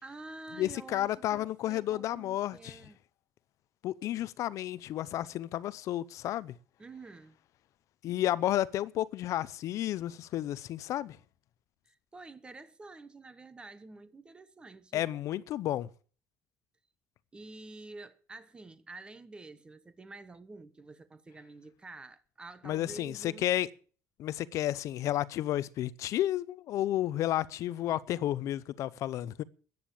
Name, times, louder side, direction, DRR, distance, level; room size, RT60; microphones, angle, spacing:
voice 1, 0.0-3.0 6.8-7.4 11.8-15.1 17.3-23.5, right 3 dB, 15° right, 1.3 m, -48 dB
voice 2, 0.6-2.8 3.8-6.5 8.0-11.2 14.9-15.9 22.6-23.7 24.2-29.4, left 13 dB, 55° left, 0.7 m, -32 dB
14.5 x 9.5 x 8.6 m
cardioid pair, 155°, 6 cm